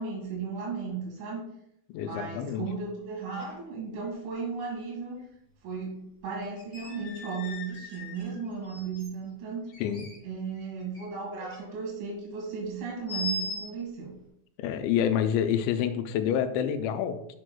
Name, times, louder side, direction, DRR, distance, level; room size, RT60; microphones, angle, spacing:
voice 1, 0.0-1.4 1.9-5.2 5.6-9.7 10.2-14.1, right 5 dB, 80° right, -1 dB, 4.2 m, -35 dB
voice 2, 1.9-2.6 9.8-10.0 14.6-17.4, left 9 dB, 85° left, 7 dB, 2.8 m, -28 dB
sound 1, 2.2-2.3 2.7-2.8 3.4-3.7 4.0-4.1 5.7-5.8 6.4-9.1 9.7-11.0 11.3-11.7 13.1-13.7, left 1 dB, 25° left, 2.3 m, -39 dB
7.7 x 7.0 x 2.2 m, 0.76 s
omnidirectional pair, 5.3 m